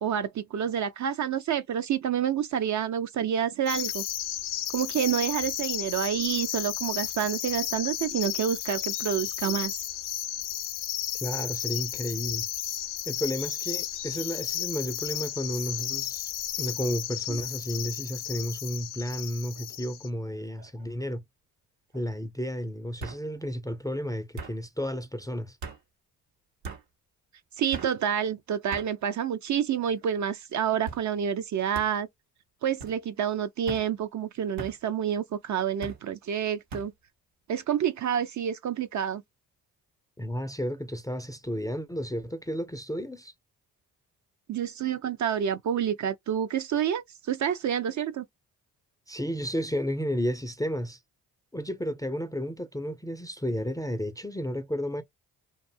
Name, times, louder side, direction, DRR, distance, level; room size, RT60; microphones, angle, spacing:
voice 1, 0.0-4.0 4.7-9.7 17.3-17.4 27.6-32.1 32.6-36.9 37.5-39.2 44.5-48.3, right 9 dB, 45° right, 0.5 m, -28 dB
sound 1, 3.7-20.1, left 12 dB, 65° left, 0.6 m, -33 dB
voice 2, 11.2-12.5 13.1-16.3 16.6-21.2 21.9-25.6 40.2-43.3 49.1-51.0 51.5-55.0, equal, 10° left, 0.4 m, -32 dB
sound 2, 19.6-19.9 20.3-20.9 21.9-22.0 23.0-23.2 24.4-24.6 25.6-25.8 26.6-26.8 27.7-27.9 28.7-28.9 29.7-30.1 30.9-31.1 31.7-31.9 32.8-33.0 33.7-33.9 34.6-34.8 35.8-36.0 36.7-36.9, right 3 dB, 80° right, 0.9 m, -40 dB
2.5 x 2.3 x 2.5 m
hypercardioid pair, 40°, 43 cm